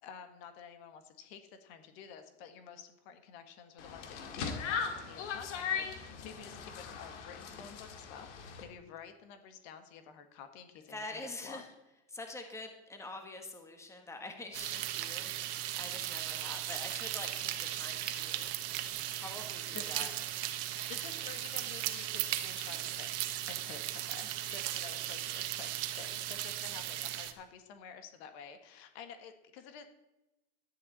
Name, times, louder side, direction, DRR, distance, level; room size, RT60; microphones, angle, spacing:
voice 1, 0.0-8.3 8.6-11.6 16.4-16.6 19.7-20.1 20.9-23.1 23.5-25.7 26.0-29.8, left 7 dB, 60° left, 8 dB, 1.7 m, -50 dB
sound 1, 3.8-8.6, left 6 dB, 80° left, 2.2 m, -39 dB
voice 2, 10.9-11.7 12.1-20.1, left 2 dB, 10° left, 5 dB, 1.6 m, -46 dB
sound 2, 14.5-27.3, right 13 dB, 65° right, 1.3 m, -37 dB
12.0 x 10.0 x 4.2 m, 0.99 s
supercardioid pair, 120°, 35 cm